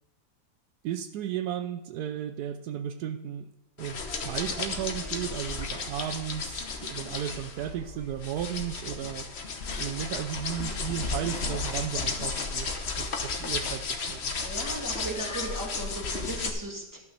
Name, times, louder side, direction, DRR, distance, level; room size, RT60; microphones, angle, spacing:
voice 1, 0.8-3.5 3.8-9.3 9.7-14.3, right 10 dB, 80° right, 9 dB, 1.1 m, -34 dB
sound 1, 3.8-16.5, left 4 dB, 45° left, 1.2 m, -33 dB
voice 2, 14.4-17.0, right 2 dB, 10° right, -1 dB, 2.0 m, -37 dB
12.0 x 6.0 x 6.7 m, 0.96 s
omnidirectional pair, 1.7 m